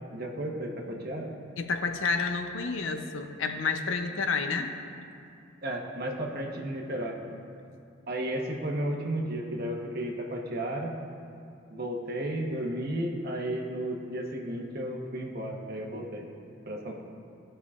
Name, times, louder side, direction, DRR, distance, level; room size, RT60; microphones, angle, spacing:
voice 1, 0.1-1.4 5.6-7.2 8.1-10.9 11.7-16.3 16.7-17.0, right 1 dB, 50° right, 1 dB, 1.0 m, -33 dB
voice 2, 1.6-4.7, left 4 dB, 80° left, 6 dB, 0.6 m, -30 dB
16.0 x 5.6 x 2.4 m, 2.6 s
head